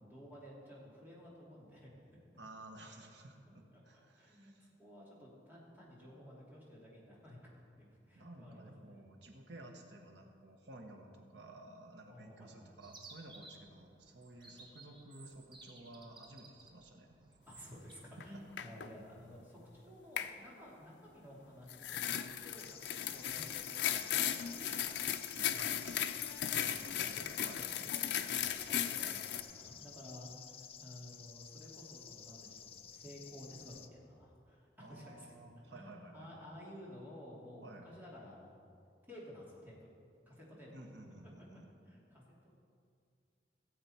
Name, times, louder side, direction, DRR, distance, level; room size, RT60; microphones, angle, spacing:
voice 1, 0.0-2.2 3.7-3.8 4.1-9.0 12.1-12.7 17.5-24.9 26.5-35.3 35.6-38.6 39.1-39.8 40.3-40.7 41.9-42.6, equal, 10° right, -6 dB, 2.5 m, -54 dB
voice 2, 2.4-4.7 8.1-17.3 18.2-18.3 25.3-26.0 27.4-27.6 34.8-36.5 37.6-37.9 40.7-41.7, right 2 dB, 80° right, 3 dB, 1.3 m, -54 dB
Chirp tweet, 12.8-17.9, right 3 dB, 25° right, 1.0 m, -57 dB
sound 1, 18.2-18.3 18.6-18.9 20.2-20.3 21.7-29.4, left 10 dB, 80° left, 0.5 m, -36 dB
sound 2, 22.6-33.9, left 8 dB, 35° left, 0.4 m, -53 dB
16.5 x 7.8 x 4.4 m, 2.4 s
head